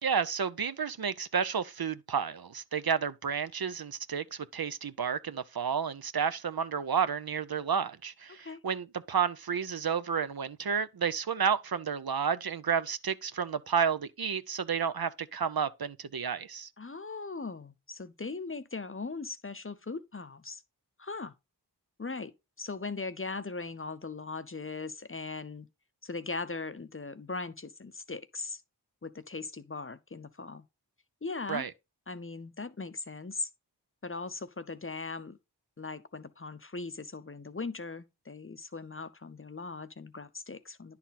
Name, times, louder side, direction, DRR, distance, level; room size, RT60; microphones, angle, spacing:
voice 1, 0.0-16.7 31.5-31.7, right 7 dB, 60° right, 0.6 m, -31 dB
voice 2, 16.8-20.6 21.0-21.3 22.0-22.3 22.6-25.7 26.0-28.6 29.0-30.6 31.2-31.7 32.1-33.5 34.0-35.4 35.8-41.0, left 3 dB, 30° left, 0.7 m, -39 dB
10.0 x 4.1 x 4.1 m
wide cardioid pair, 45°, 43 cm